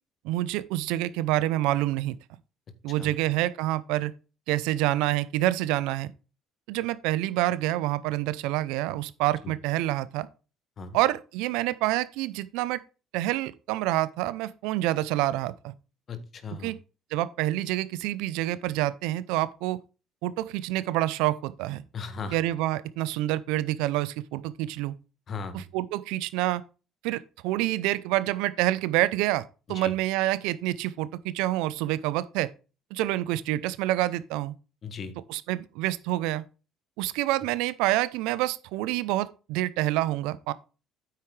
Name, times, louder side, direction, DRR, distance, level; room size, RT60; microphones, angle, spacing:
voice 1, 0.2-2.2 2.8-4.1 4.5-6.1 6.7-10.3 10.9-12.8 13.1-15.7 16.6-16.8 17.1-19.8 20.2-21.8 22.3-24.9 25.5-26.6 27.0-32.5 32.9-34.5 35.3-36.4 37.0-40.5, right 16 dB, 75° right, 0.6 m, -27 dB
voice 2, 16.1-16.7 21.9-22.4 25.3-25.6 29.7-29.9 34.8-35.1, left 4 dB, 50° left, 1.7 m, -37 dB
9.2 x 7.7 x 3.3 m
hypercardioid pair, 65°, 0 cm